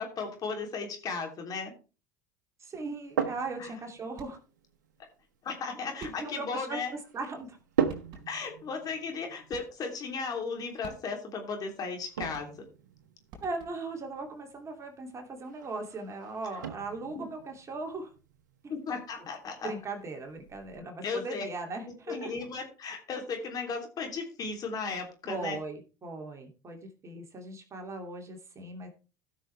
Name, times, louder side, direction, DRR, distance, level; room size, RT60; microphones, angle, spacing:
voice 1, 0.0-1.7 3.6-3.7 5.4-6.9 8.3-12.5 17.1-17.3 18.7-19.7 21.0-21.4 22.1-25.6, left 4 dB, 40° left, 3 dB, 3.2 m, -35 dB
voice 2, 2.6-4.4 6.0-6.8 7.1-7.6 13.4-18.1 18.6-18.7 19.6-22.3 25.2-28.9, right 3 dB, 30° right, 3 dB, 2.7 m, -38 dB
sound 1, 2.7-20.8, right 7 dB, 80° right, 1.1 m, -40 dB
sound 2, 4.1-4.6 6.0-6.5 7.5-7.6 7.9-8.5 9.5-10.0 10.8-11.4 12.2-12.9 13.3-14.0, right 3 dB, 50° right, 4.1 m, -50 dB
16.5 x 6.2 x 3.4 m, 0.33 s
hypercardioid pair, 75°, 10 cm